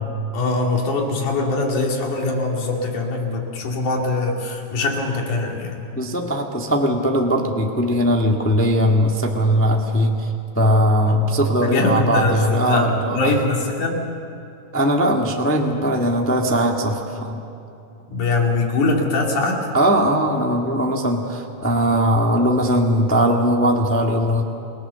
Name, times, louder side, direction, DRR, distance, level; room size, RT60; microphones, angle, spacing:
voice 1, 0.3-5.8 11.1-11.2 11.6-14.0 18.1-19.6, left 3 dB, 75° left, 0 dB, 4.1 m, -22 dB
voice 2, 5.9-13.4 14.7-17.4 19.7-24.4, equal, 15° left, 1 dB, 0.4 m, -19 dB
29.0 x 18.5 x 6.9 m, 2.8 s
omnidirectional pair, 3.6 m